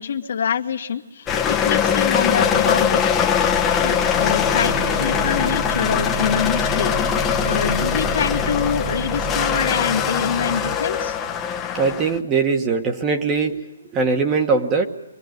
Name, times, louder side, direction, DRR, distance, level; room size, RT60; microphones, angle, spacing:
voice 1, 0.0-3.0 3.8-6.9 7.4-11.2, left 7 dB, 65° left, 3 dB, 1.9 m, -25 dB
Cold start of old diesel car, 1.3-12.2, left 7 dB, 15° left, 1.1 m, -21 dB
sound 1, 4.1-10.8, right 8 dB, 35° right, 1.8 m, -32 dB
voice 2, 11.7-13.6 13.9-14.9, right 4 dB, 20° right, 4 dB, 1.6 m, -20 dB
24.5 x 19.5 x 9.5 m, 1.0 s
hypercardioid pair, 155°, 0 cm